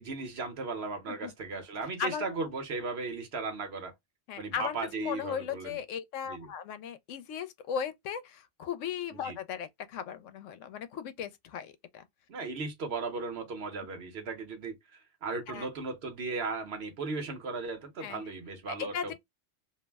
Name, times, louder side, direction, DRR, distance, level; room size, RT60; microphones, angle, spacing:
voice 1, 0.0-3.9 4.4-5.8 6.2-6.5 9.2-9.3 12.3-14.7 15.2-19.1, right 3 dB, 60° right, 1.0 m, -36 dB
voice 2, 2.0-2.4 4.3-12.0 15.5-15.7 18.0-18.2 18.8-19.1, left 8 dB, 80° left, 0.9 m, -37 dB
2.6 x 2.0 x 3.2 m
omnidirectional pair, 1.3 m